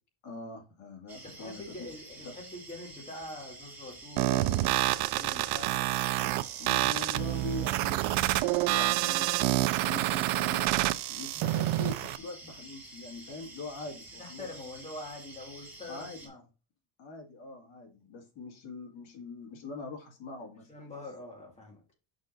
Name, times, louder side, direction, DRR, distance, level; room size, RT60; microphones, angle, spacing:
voice 1, 0.2-1.9 6.6-8.0 8.6-9.5 9.8-10.7 11.1-14.5 15.9-16.2 17.0-20.7, left 3 dB, 70° left, 2 dB, 2.2 m, -43 dB
sound 1, 1.1-16.3, right 2 dB, 5° right, 2.2 m, -49 dB
voice 2, 1.2-6.6 14.2-16.4 20.7-21.8, left 2 dB, 15° left, -2 dB, 2.4 m, -45 dB
sound 2, 4.2-12.2, right 17 dB, 85° right, 0.6 m, -28 dB
6.5 x 6.4 x 2.6 m, 0.32 s
cardioid pair, 160°, 48 cm